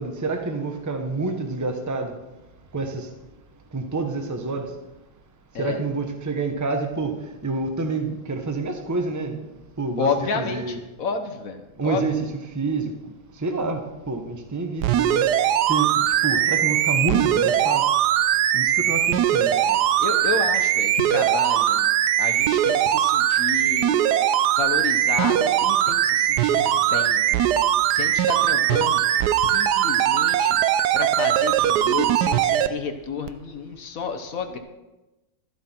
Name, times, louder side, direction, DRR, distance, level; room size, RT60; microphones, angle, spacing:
voice 1, 0.0-2.2 2.7-3.1 3.7-4.7 5.6-9.4 9.8-10.1 10.3-10.8 11.8-13.0 13.4-15.3 15.7-17.8 18.5-19.5, right 3 dB, 20° right, 5 dB, 0.4 m, -28 dB
voice 2, 10.0-12.0 19.6-21.9 22.2-24.0 24.6-27.3 27.9-29.0 29.4-30.6 30.9-34.6, left 5 dB, 50° left, 7 dB, 1.1 m, -30 dB
sound 1, 14.8-32.7 33.3-33.4, right 11 dB, 80° right, 0.9 m, -20 dB
13.0 x 11.5 x 4.4 m, 1.0 s
omnidirectional pair, 2.4 m